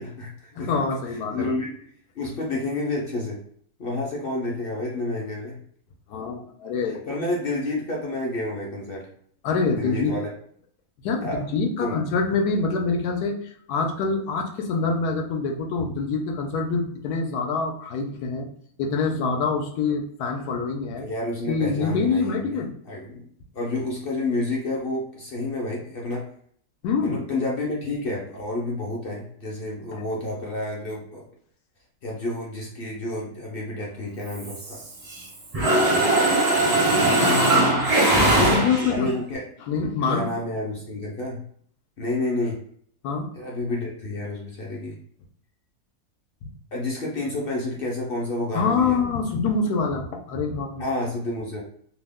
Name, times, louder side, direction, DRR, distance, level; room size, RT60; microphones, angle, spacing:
voice 1, 0.0-0.7 1.3-1.9 2.2-3.4 3.8-5.6 6.8-9.0 9.7-10.3 11.2-11.4 11.8-12.0 21.0-22.6 22.9-23.2 23.5-26.2 27.0-31.2 32.0-34.8 38.9-39.5 40.1-41.4 42.0-42.6 43.3-45.0 46.7-49.0 50.8-51.6, left 2 dB, 60° left, -2 dB, 0.5 m, -29 dB
voice 2, 0.6-1.5 6.1-7.0 9.4-10.1 11.0-18.5 18.8-21.0 21.5-22.8 26.8-27.2 29.9-30.0 37.2-37.9 38.3-39.1 39.7-40.3 43.0-43.3 48.5-50.8, left 4 dB, 90° left, 3 dB, 1.1 m, -25 dB
Mechanisms, 34.3-35.2 35.5-39.1, right 2 dB, 40° right, 0.5 m, -20 dB
2.9 x 2.0 x 3.4 m, 0.62 s
omnidirectional pair, 1.6 m